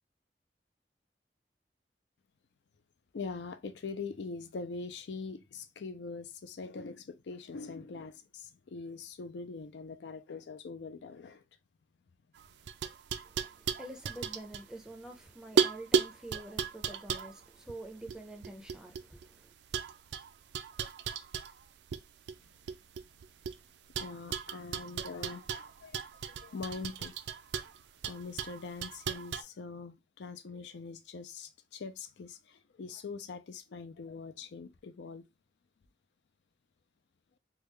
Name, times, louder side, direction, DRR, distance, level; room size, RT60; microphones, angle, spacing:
voice 1, 3.1-11.4 24.0-27.1 28.0-35.2, left 4 dB, 85° left, 0.4 m, -43 dB
sound 1, 12.4-15.2 15.6-19.3 19.7-22.0 22.3-23.6 23.9-29.4, right 6 dB, 80° right, 0.3 m, -35 dB
voice 2, 13.2-19.5, right 1 dB, 5° right, 0.5 m, -47 dB
3.5 x 2.3 x 3.2 m
head